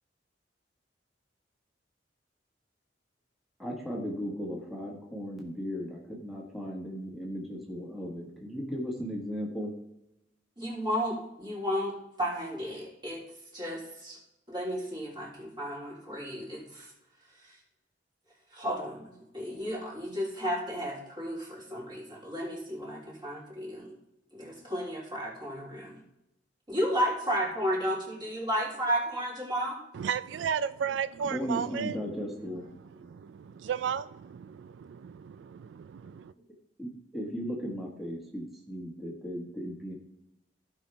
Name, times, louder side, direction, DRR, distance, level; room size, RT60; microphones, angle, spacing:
voice 1, 3.6-9.7 31.3-32.7 36.8-39.9, equal, ahead, 1.6 m, -36 dB
voice 2, 10.6-13.2 13.5-14.2 14.5-16.9 17.4-17.5 18.5-24.0 24.3-26.0 26.7-29.8 32.1-32.3, equal, 25° right, 3.5 m, -33 dB
voice 3, 29.9-32.0 32.8-36.3, right 7 dB, 80° right, 0.3 m, -34 dB
16.0 x 5.7 x 3.4 m
head